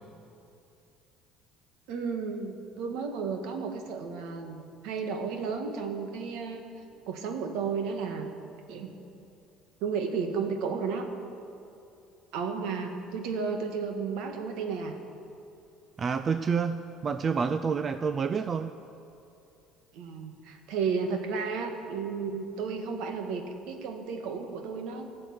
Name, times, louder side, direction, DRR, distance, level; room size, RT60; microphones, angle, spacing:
voice 1, 1.9-6.6 7.1-8.3 8.7-8.9 9.8-11.1 12.3-14.9 19.9-25.1, right 5 dB, 75° right, 4 dB, 1.7 m, -33 dB
voice 2, 16.0-18.8, right 6 dB, 35° right, 10 dB, 0.4 m, -28 dB
16.0 x 6.5 x 9.5 m, 2.7 s
cardioid pair, 105°, 0 cm